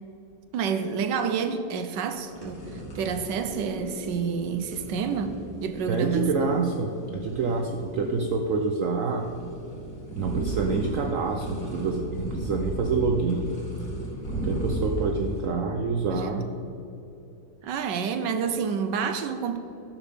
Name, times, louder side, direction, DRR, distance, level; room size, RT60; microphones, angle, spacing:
voice 1, 0.5-6.3 16.1-16.5 17.6-19.6, right 6 dB, 85° right, 8 dB, 1.4 m, -29 dB
sound 1, 2.2-15.5, right 1 dB, 65° left, 3.2 m, -35 dB
voice 2, 5.9-9.3 10.1-13.5 14.4-16.5, right 4 dB, 60° right, 3 dB, 0.9 m, -27 dB
12.0 x 5.4 x 6.7 m, 2.9 s
omnidirectional pair, 1.9 m